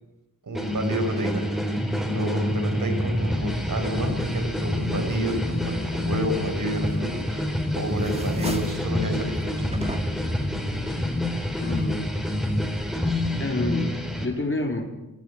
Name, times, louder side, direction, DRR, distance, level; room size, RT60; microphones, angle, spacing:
voice 1, 0.4-1.8 2.1-9.7, right 1 dB, 75° right, 4 dB, 4.9 m, -30 dB
sound 1, 0.5-14.2, left 1 dB, ahead, 4.3 m, -27 dB
sound 2, 2.5-6.6, equal, 15° left, 4.9 m, -36 dB
sound 3, 7.1-7.6 7.9-8.9 9.7-10.4, right 1 dB, 20° right, 2.3 m, -35 dB
voice 2, 11.6-12.0 13.4-14.9, left 2 dB, 40° left, 3 dB, 3.7 m, -29 dB
20.0 x 15.0 x 10.0 m, 1.1 s
wide cardioid pair, 105°, 32 cm